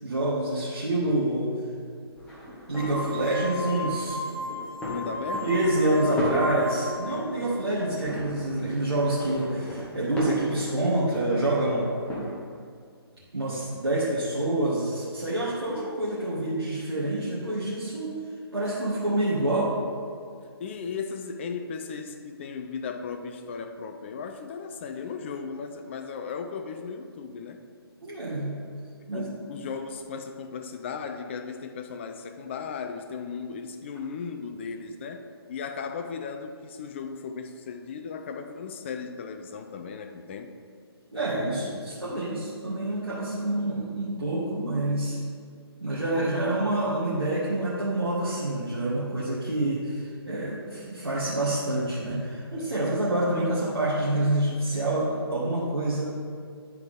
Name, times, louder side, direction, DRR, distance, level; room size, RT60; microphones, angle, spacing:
voice 1, 0.0-1.5 2.7-4.2 5.4-11.8 13.3-18.1 18.5-19.8 28.0-28.6 29.1-29.3 41.1-45.2 45.8-56.0, right 1 dB, 75° right, -10 dB, 2.0 m, -27 dB
sound 1, 2.2-12.3, equal, 10° left, 1.2 m, -36 dB
sound 2, 2.7-7.1, left 1 dB, 10° right, 1.5 m, -35 dB
voice 2, 4.8-5.6 20.6-27.6 29.1-40.5 41.5-41.6 42.0-42.3, left 5 dB, 30° left, 6 dB, 0.4 m, -36 dB
10.5 x 4.6 x 3.7 m, 2.1 s
figure-of-eight pair, 140°, 13 cm